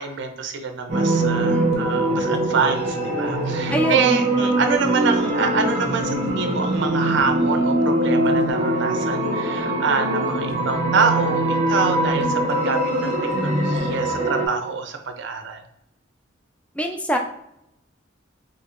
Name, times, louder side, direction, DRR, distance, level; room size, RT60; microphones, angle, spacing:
voice 1, 0.0-15.6, right 5 dB, 65° right, 7 dB, 0.5 m, -26 dB
sound 1, 0.9-14.5, right 1 dB, 40° right, 0.8 m, -22 dB
voice 2, 1.5-1.9 3.7-4.4 16.7-17.2, equal, 5° left, 3 dB, 0.4 m, -25 dB
4.4 x 2.7 x 2.5 m, 0.82 s
head